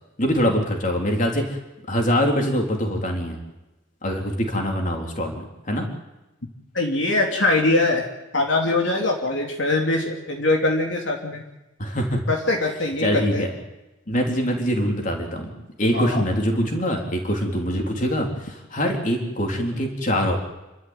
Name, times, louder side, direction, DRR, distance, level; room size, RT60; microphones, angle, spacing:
voice 1, 0.2-1.6 1.9-3.4 4.0-5.9 11.8-12.2 13.0-13.5 14.1-15.5 15.8-20.4, equal, 40° left, 2 dB, 3.9 m, -23 dB
voice 2, 6.7-8.0 8.3-11.4 12.3-13.4 15.9-16.2, left 2 dB, 65° left, 0 dB, 3.0 m, -22 dB
28.5 x 13.0 x 9.2 m, 1.0 s
head